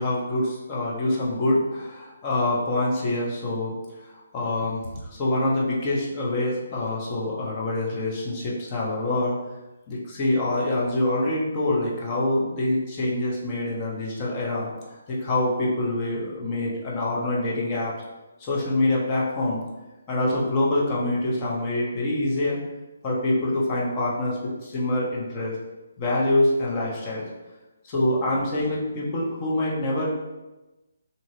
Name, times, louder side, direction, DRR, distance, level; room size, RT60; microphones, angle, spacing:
voice 1, 0.0-3.8 4.1-9.4 9.9-17.9 18.4-19.6 20.1-22.6 23.0-25.6 26.0-27.2 27.8-30.1, left 1 dB, 25° left, -5 dB, 0.7 m, -25 dB
2.8 x 2.7 x 2.6 m, 1.1 s
figure-of-eight pair, 140°, 0 cm